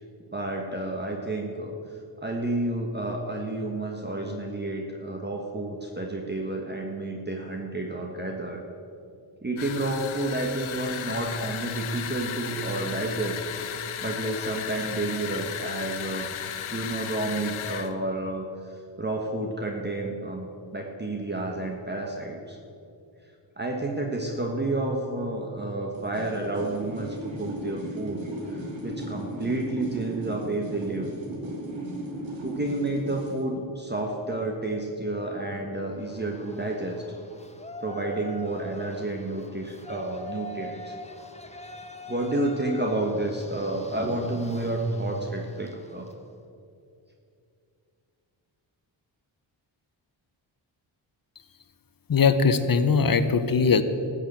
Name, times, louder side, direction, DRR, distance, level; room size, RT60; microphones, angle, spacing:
voice 1, 0.3-8.6 9.4-16.3 16.7-22.6 23.6-31.1 32.4-37.0 37.8-41.0 42.1-46.1, right 2 dB, 20° right, 1 dB, 1.5 m, -30 dB
sound 1, 9.6-17.9, left 9 dB, 75° left, 0.9 m, -35 dB
sound 2, 25.9-33.4, right 1 dB, 65° right, 2.7 m, -36 dB
Yell, 36.0-46.2, left 1 dB, 15° left, 1.4 m, -42 dB
voice 2, 52.1-53.8, left 5 dB, 45° left, 11 dB, 1.0 m, -20 dB
13.5 x 6.8 x 8.1 m, 2.6 s
cardioid pair, 55°, 48 cm